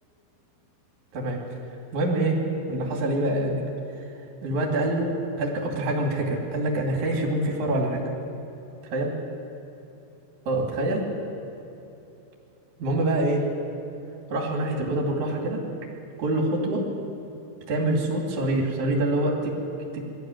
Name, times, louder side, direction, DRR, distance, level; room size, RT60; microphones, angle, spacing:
voice 1, 1.9-2.4 2.7-3.6 4.4-8.0 8.9-9.1 10.5-11.0 12.8-13.5 14.3-15.6 16.2-16.8 17.7-19.5 19.9-20.0, right 1 dB, 45° right, -1 dB, 3.4 m, -25 dB
20.5 x 14.0 x 9.2 m, 2.9 s
omnidirectional pair, 5.9 m